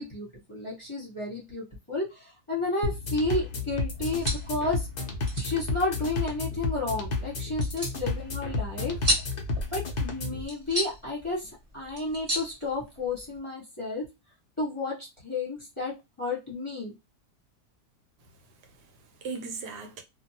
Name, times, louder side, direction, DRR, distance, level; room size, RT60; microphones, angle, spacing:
voice 1, 0.0-4.9 5.4-9.0 9.7-14.1 14.6-15.0 15.2-17.0, left 2 dB, 20° left, 0.9 m, -32 dB
sound 1, 2.8-10.4, left 3 dB, 80° left, 0.4 m, -32 dB
sound 2, 3.9-13.4, equal, 25° right, 1.2 m, -35 dB
voice 2, 18.2-20.0, right 4 dB, 80° right, 1.3 m, -40 dB
2.7 x 2.3 x 2.8 m
omnidirectional pair, 1.8 m